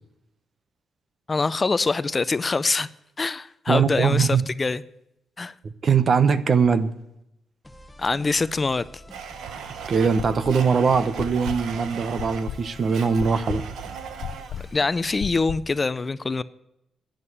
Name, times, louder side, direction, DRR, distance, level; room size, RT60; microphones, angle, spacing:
voice 1, 1.3-2.9 3.2-4.8 5.4-5.5 8.0-9.0 14.7-16.4, left 3 dB, 25° left, 15 dB, 0.5 m, -24 dB
voice 2, 3.7-4.5 5.6-6.9 9.9-13.6, right 6 dB, 45° right, 13 dB, 1.0 m, -21 dB
sound 1, 7.6-15.3, left 1 dB, 10° left, 1.1 m, -47 dB
Domestic sounds home sounds, 9.1-14.8, right 7 dB, 80° right, 1.2 m, -38 dB
sound 2, 10.2-10.8 11.2-15.8, left 10 dB, 85° left, 0.4 m, -35 dB
11.0 x 10.5 x 8.7 m, 0.84 s
cardioid pair, 110°, 0 cm